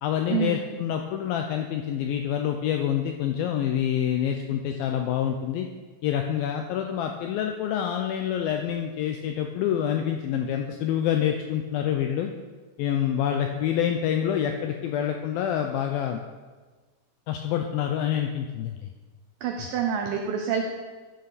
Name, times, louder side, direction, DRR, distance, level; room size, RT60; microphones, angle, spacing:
voice 1, 0.0-5.7 6.0-12.3 12.8-16.2 17.3-18.9 19.6-19.7, left 9 dB, 85° left, 4 dB, 2.1 m, -27 dB
voice 2, 19.4-20.6, right 7 dB, 90° right, 3 dB, 1.9 m, -27 dB
13.5 x 6.5 x 4.1 m, 1.3 s
omnidirectional pair, 4.8 m